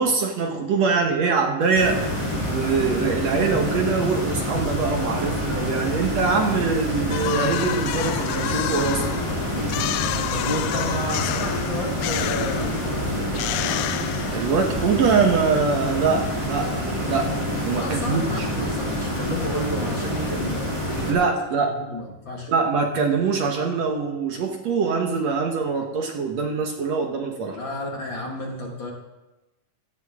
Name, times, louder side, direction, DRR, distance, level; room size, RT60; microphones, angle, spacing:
voice 1, 0.0-2.0 2.5-9.0 14.3-17.3 17.6-18.5 21.1-21.7 22.5-27.6, right 5 dB, 60° right, 3 dB, 2.2 m, -23 dB
sound 1, 1.7-21.1, equal, 10° left, 3.3 m, -27 dB
sound 2, 7.1-14.7, left 14 dB, 85° left, 2.3 m, -30 dB
voice 2, 10.3-13.0 17.8-21.3 21.8-22.5 27.5-28.9, equal, 40° left, -1 dB, 2.3 m, -31 dB
17.0 x 14.0 x 3.7 m, 1.0 s
omnidirectional pair, 3.8 m